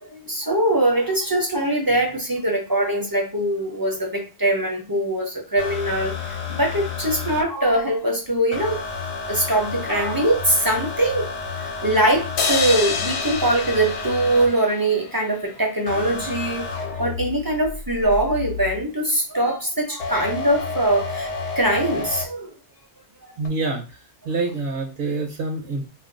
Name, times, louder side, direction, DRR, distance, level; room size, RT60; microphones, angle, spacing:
voice 1, 0.0-8.9 9.2-21.3 21.6-22.5 23.2-23.3, right 1 dB, 25° right, 1 dB, 0.5 m, -22 dB
sound 1, 5.6-7.4 8.5-14.5 15.9-18.8 20.0-22.2 23.4-23.5, left 4 dB, 80° left, 1.0 m, -31 dB
sound 2, 12.4-15.7, left 5 dB, 60° left, 0.6 m, -28 dB
voice 2, 23.4-24.0 24.2-25.9, right 3 dB, 60° right, 2 dB, 0.8 m, -26 dB
2.4 x 2.2 x 3.7 m, 0.30 s
omnidirectional pair, 1.2 m